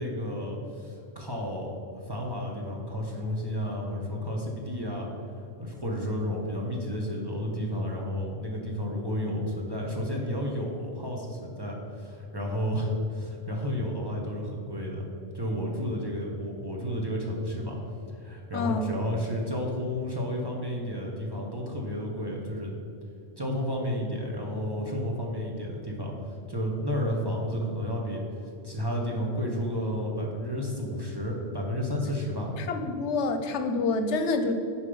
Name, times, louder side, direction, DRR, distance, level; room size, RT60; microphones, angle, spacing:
voice 1, 0.0-5.1 5.6-15.1 15.3-17.8 18.1-22.7 23.4-26.1 26.5-28.2 28.6-32.5, equal, 25° right, -1 dB, 0.9 m, -31 dB
voice 2, 18.5-18.9 32.6-34.5, left 3 dB, 85° left, 7 dB, 1.0 m, -27 dB
6.7 x 4.7 x 5.4 m, 2.6 s
omnidirectional pair, 1.2 m